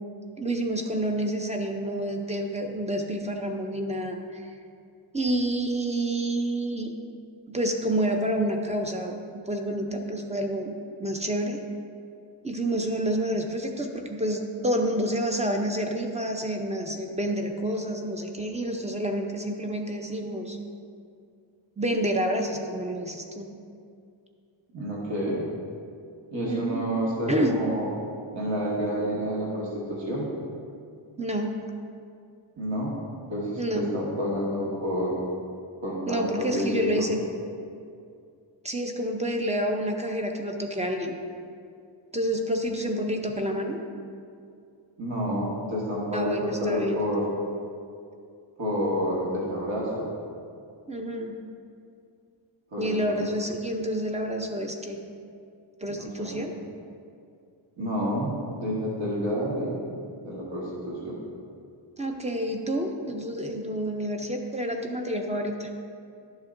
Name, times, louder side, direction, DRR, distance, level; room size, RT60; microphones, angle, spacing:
voice 1, 0.4-4.5 5.1-6.9 7.5-9.2 9.5-11.6 12.4-20.6 21.8-23.5 26.5-26.8 27.3-27.6 31.2-31.5 33.6-33.9 36.1-37.2 38.6-41.1 42.1-43.8 46.1-47.0 50.9-51.3 52.8-55.0 55.8-56.5 62.0-65.7, right 1 dB, 15° right, 3 dB, 0.5 m, -28 dB
voice 2, 24.7-25.5 26.3-27.9 28.3-30.3 32.6-33.0 33.3-35.2 35.8-37.1 45.0-47.3 48.6-50.1 52.7-53.2 55.9-56.4 57.8-59.8 60.2-61.2, equal, 65° right, -5 dB, 1.6 m, -29 dB
11.5 x 7.2 x 2.6 m, 2.4 s
wide cardioid pair, 165°, 50 cm